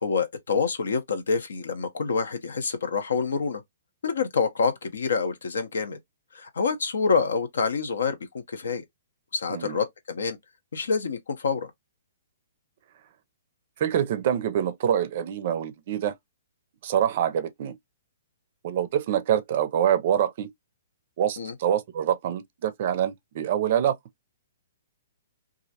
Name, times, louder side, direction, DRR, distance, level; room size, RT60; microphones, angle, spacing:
voice 1, 0.0-3.6 4.0-6.0 6.3-8.8 9.3-10.4 10.7-11.7 21.4-21.5, left 5 dB, 80° left, 0.6 m, -27 dB
voice 2, 9.5-9.8 13.8-16.1 16.8-17.8 18.6-20.5 21.2-24.0, right 9 dB, 50° right, 0.4 m, -25 dB
2.4 x 2.0 x 2.7 m
hypercardioid pair, 145°, 0 cm